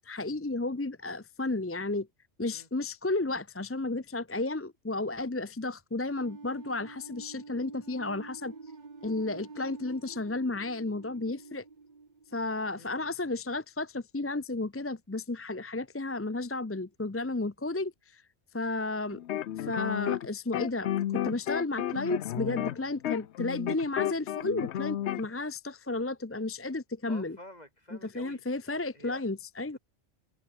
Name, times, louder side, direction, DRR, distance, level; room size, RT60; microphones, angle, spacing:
voice 1, 0.0-2.1 2.4-8.5 9.0-11.6 12.3-18.2 18.5-19.2 19.6-27.4 27.9-29.8, left 2 dB, 15° left, 0.5 m, -33 dB
sound 1, 6.2-13.0, right 4 dB, 40° right, 1.6 m, -48 dB
voice 2, 12.8-13.1 21.3-21.4 22.5-22.8 27.1-29.2 29.7-29.8, left 1 dB, 35° left, 7.0 m, -50 dB
sound 2, 19.1-20.3 20.5-25.3, left 11 dB, 80° left, 0.9 m, -32 dB
omnidirectional pair, 1.1 m